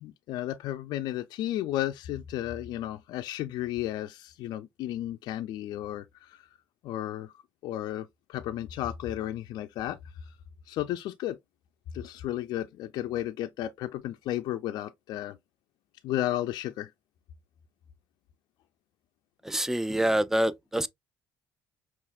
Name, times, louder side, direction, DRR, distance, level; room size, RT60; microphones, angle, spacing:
voice 1, 0.0-6.5 6.8-7.3 7.6-10.3 10.7-11.4 11.9-15.4 16.0-16.9, left 13 dB, 70° left, 0.3 m, -33 dB
voice 2, 19.4-20.9, right 1 dB, 5° right, 0.4 m, -26 dB
5.5 x 2.4 x 2.3 m
supercardioid pair, 80°, 7 cm